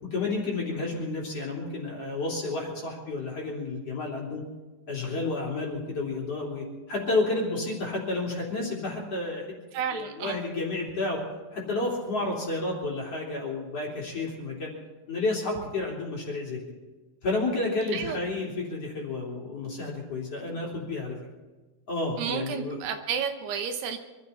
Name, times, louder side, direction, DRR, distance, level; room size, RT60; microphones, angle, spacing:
voice 1, 0.0-4.4 4.9-9.5 9.9-11.2 11.5-14.7 15.1-16.6 17.2-21.2 21.9-22.8, left 2 dB, 35° left, -3 dB, 3.8 m, -31 dB
voice 2, 9.7-10.4 17.9-18.2 22.2-24.0, right 7 dB, 75° right, 6 dB, 2.9 m, -31 dB
25.0 x 13.0 x 4.3 m, 1.3 s
omnidirectional pair, 5.2 m